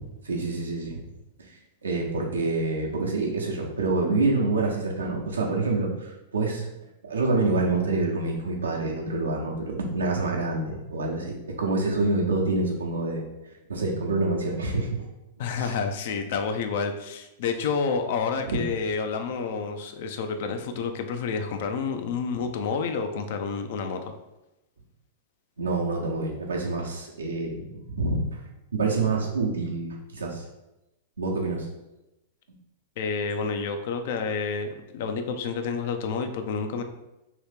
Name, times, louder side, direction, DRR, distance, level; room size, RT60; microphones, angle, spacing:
voice 1, 0.2-1.0 1.4-6.7 7.0-13.2 13.7-15.0 15.6-15.8 18.4-18.6 22.3-22.4 25.6-28.4 28.7-30.4 31.2-31.7, right 3 dB, 90° right, 0 dB, 0.8 m, -27 dB
voice 2, 15.4-24.0 33.0-36.8, left 5 dB, 60° left, 6 dB, 0.4 m, -29 dB
2.9 x 2.7 x 3.5 m, 0.95 s
hypercardioid pair, 110°, 0 cm